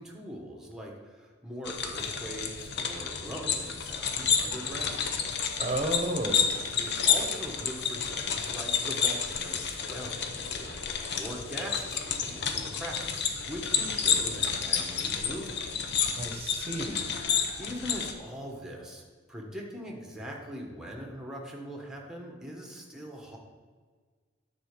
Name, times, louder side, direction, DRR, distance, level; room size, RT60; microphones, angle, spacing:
voice 1, 0.0-5.2 6.8-15.6 17.6-23.4, equal, 5° right, 0 dB, 1.5 m, -41 dB
sound 1, 1.7-18.1, left 6 dB, 60° left, 0.9 m, -30 dB
voice 2, 5.6-6.6 16.2-17.2, right 1 dB, 30° right, 5 dB, 1.1 m, -32 dB
10.5 x 4.3 x 6.7 m, 1.5 s
head